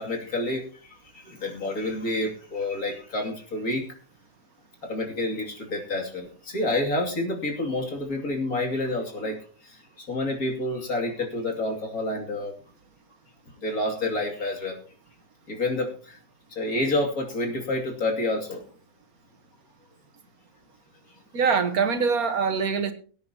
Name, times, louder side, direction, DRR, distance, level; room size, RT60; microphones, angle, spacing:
voice 1, 0.0-3.8 4.8-12.5 13.6-14.8 15.5-16.2 16.5-18.6, left 2 dB, 90° left, 3.1 m, -29 dB
voice 2, 21.3-22.9, right 5 dB, 90° right, 1.8 m, -23 dB
23.0 x 9.5 x 2.9 m
omnidirectional pair, 1.5 m